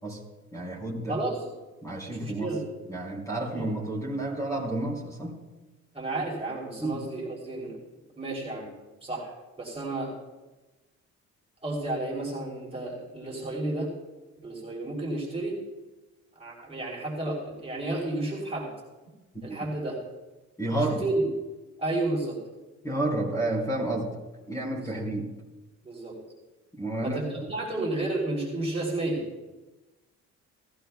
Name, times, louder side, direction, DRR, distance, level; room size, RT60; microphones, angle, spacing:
voice 1, 0.5-1.2 1.8-2.5 2.9-5.4 6.8-7.0 19.5-19.6 20.6-21.1 22.8-24.2 24.5-25.3 26.7-27.5, right 1 dB, 10° left, -3 dB, 3.7 m, -30 dB
voice 2, 1.1-1.4 2.1-2.6 3.5-3.6 5.9-7.8 8.1-8.7 9.0-10.1 11.6-13.9 14.4-15.6 16.4-18.7 19.4-20.0 20.7-21.3 21.8-22.4 24.7-25.0 25.8-26.2 27.0-29.2, right 2 dB, 20° right, -4 dB, 3.1 m, -32 dB
18.0 x 14.5 x 2.3 m, 1.1 s
cardioid pair, 155°, 29 cm